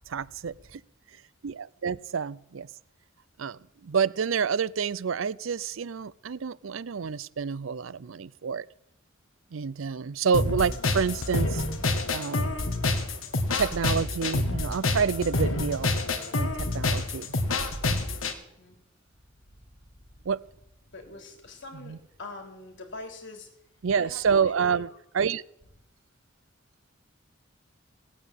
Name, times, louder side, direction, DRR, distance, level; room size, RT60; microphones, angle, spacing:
voice 1, 0.1-0.8 1.4-2.7 3.4-8.7 9.5-11.6 12.1-12.6 13.5-15.9 16.4-17.3 20.2-20.4 21.8-22.0 23.8-25.4, right 6 dB, 75° right, 0.5 m, -28 dB
sound 1, 10.3-18.3, left 2 dB, 85° left, 1.9 m, -27 dB
voice 2, 18.3-18.8 20.9-23.5 24.0-24.2 24.5-24.8, left 2 dB, 65° left, 3.5 m, -44 dB
18.0 x 8.7 x 9.0 m
head